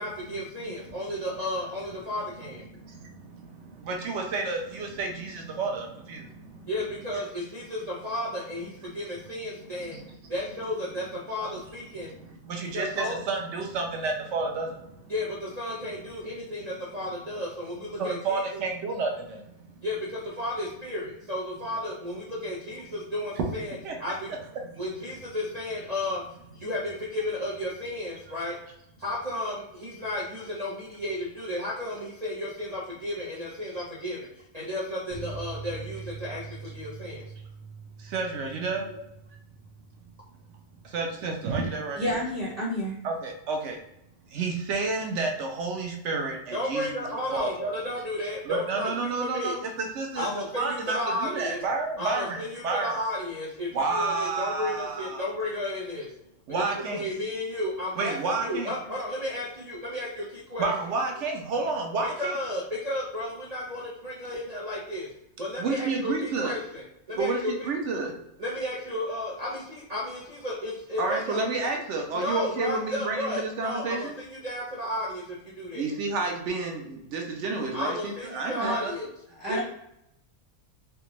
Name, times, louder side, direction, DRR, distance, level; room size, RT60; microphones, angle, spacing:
voice 1, 0.0-2.6 6.7-10.0 10.3-12.1 12.7-13.1 15.1-18.6 19.8-24.3 24.8-26.2 26.6-28.6 29.0-34.3 34.5-37.2 38.9-39.0 46.5-48.9 49.2-49.6 50.1-51.6 52.0-56.1 56.9-60.7 62.0-65.1 65.4-67.7 68.4-71.4 72.1-75.9 77.7-79.1 79.5-79.6, left 1 dB, 45° right, -6 dB, 0.5 m, -33 dB
voice 2, 0.6-1.0 2.7-6.7 9.6-10.3 12.0-15.1 18.0-19.7 23.4-23.5 23.8-24.0 24.6-24.7 38.0-38.9 40.8-42.2 43.0-43.8 44.3-46.9 47.3-47.5 48.4-53.0 53.7-55.3 56.5-57.0 58.0-58.7 60.6-62.4 65.6-66.6 67.2-68.1 71.0-74.2 75.7-78.9, right 3 dB, 60° right, 2 dB, 0.9 m, -30 dB
sound 1, 35.1-42.2 42.5-42.6 42.9-43.0, right 5 dB, 90° right, 1.2 m, -44 dB
voice 3, 42.0-43.0 78.6-78.7 79.4-79.6, equal, 30° right, -9 dB, 1.3 m, -29 dB
3.5 x 2.2 x 2.9 m, 0.79 s
omnidirectional pair, 1.5 m